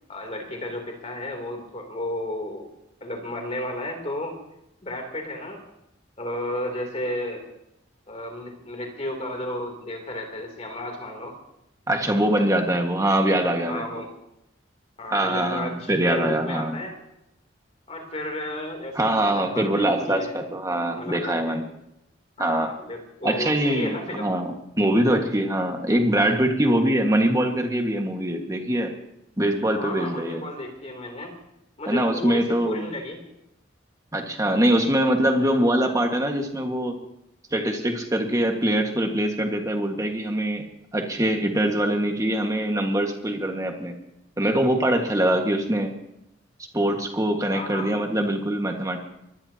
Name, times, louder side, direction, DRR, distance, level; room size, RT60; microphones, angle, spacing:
voice 1, 0.0-2.7 3.0-4.4 4.8-5.6 6.2-7.4 8.1-11.4 13.7-14.1 15.0-17.0 17.9-20.4 20.9-21.6 22.4-24.3 29.8-31.3 31.8-33.2 47.5-47.9, left 1 dB, 35° left, 2 dB, 3.2 m, -33 dB
voice 2, 11.9-14.0 15.1-16.8 18.9-21.6 22.4-22.7 23.2-28.9 29.4-30.4 31.9-32.9 34.1-36.9 37.5-40.6 40.9-44.0 44.4-45.9 46.7-49.0, right 1 dB, 15° right, 3 dB, 1.7 m, -23 dB
24.0 x 20.0 x 2.9 m, 0.84 s
head